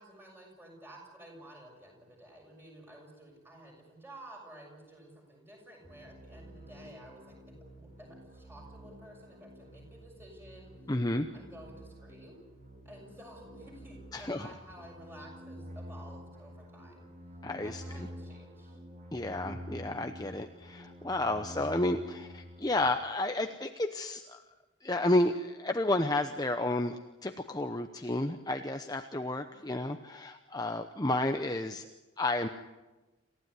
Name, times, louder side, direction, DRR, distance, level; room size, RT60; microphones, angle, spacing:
voice 1, 0.0-7.4 7.7-10.9 11.3-12.4 12.8-17.1 17.6-18.8 21.2-21.5 29.5-29.9, right 1 dB, 10° right, 0 dB, 6.7 m, -52 dB
sound 1, 5.8-22.9, equal, 35° right, 4.5 m, -49 dB
voice 2, 10.9-11.3 14.1-14.5 17.4-18.1 19.1-24.4 24.8-31.9 32.2-32.5, left 2 dB, 20° left, 6 dB, 0.8 m, -31 dB
28.0 x 15.5 x 9.7 m, 1.1 s
head